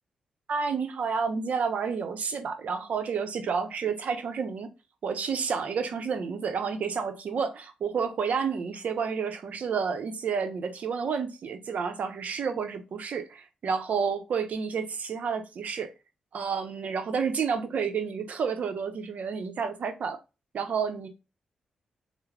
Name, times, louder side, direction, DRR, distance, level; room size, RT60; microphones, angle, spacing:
voice 1, 0.5-4.7 5.0-15.9 16.3-20.2 20.5-21.1, right 6 dB, 65° right, 0.6 m, -30 dB
3.5 x 2.0 x 3.2 m
supercardioid pair, 50°, 3 cm